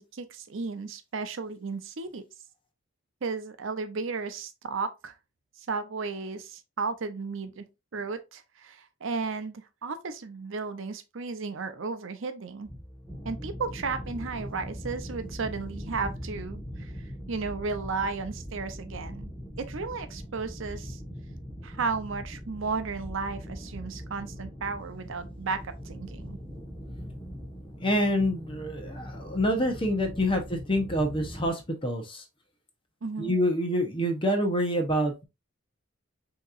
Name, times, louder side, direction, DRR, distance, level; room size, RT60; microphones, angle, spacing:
voice 1, 0.0-2.2 3.2-5.1 5.6-7.6 7.9-12.7 13.2-16.9 17.3-19.3 19.6-21.0 21.6-26.4 33.0-33.3, right 4 dB, 65° right, 0.6 m, -34 dB
sound 1, 12.6-31.5, equal, 5° left, 1.3 m, -41 dB
voice 2, 27.8-32.2 33.2-35.2, equal, 25° left, 0.8 m, -27 dB
6.3 x 2.9 x 2.5 m
head